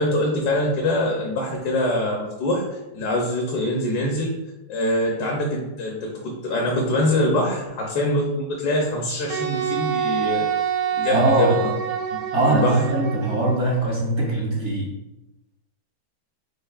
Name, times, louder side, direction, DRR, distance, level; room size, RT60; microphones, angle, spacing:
voice 1, 0.0-4.4 4.7-10.5 10.9-11.5 12.5-12.8, left 1 dB, 70° left, 0 dB, 1.3 m, -24 dB
Wind instrument woodwind instrument, 9.3-13.6, right 9 dB, 75° right, 1.1 m, -26 dB
voice 2, 11.1-11.5 12.3-14.9, right 2 dB, 55° right, -3 dB, 0.8 m, -21 dB
5.3 x 4.0 x 2.4 m, 0.98 s
omnidirectional pair, 1.9 m